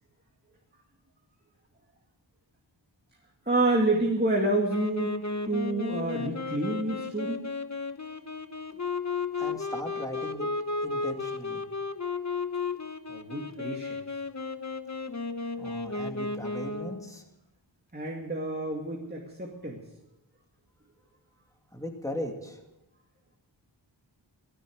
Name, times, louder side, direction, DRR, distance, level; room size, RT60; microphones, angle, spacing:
voice 1, 3.5-5.2 5.5-7.4 13.1-14.0 17.9-19.8, right 2 dB, 20° right, 0 dB, 2.4 m, -28 dB
Wind instrument woodwind instrument, 4.7-17.1, left 4 dB, 35° left, 1.1 m, -34 dB
voice 2, 9.4-10.5 10.8-11.6 15.6-17.2 21.7-22.6, equal, 5° left, 2 dB, 2.7 m, -38 dB
15.0 x 13.0 x 6.5 m, 0.89 s
wide cardioid pair, 50°, 46 cm